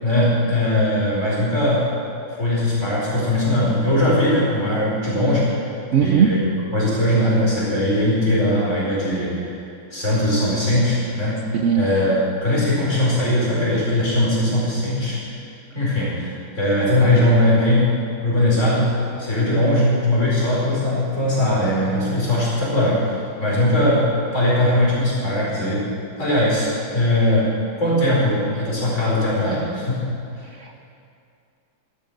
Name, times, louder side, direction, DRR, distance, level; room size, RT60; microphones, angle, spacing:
voice 1, 0.0-1.9 2.4-5.7 6.0-6.4 6.7-9.6 9.9-11.5 11.7-15.4 15.7-18.0 18.2-25.8 26.2-27.5 27.8-30.0, left 1 dB, 35° left, -6 dB, 5.1 m, -20 dB
voice 2, 5.9-6.3 11.5-11.9 30.6-30.7, right 8 dB, 80° right, 5 dB, 0.6 m, -18 dB
13.5 x 12.5 x 6.5 m, 2.5 s
omnidirectional pair, 2.1 m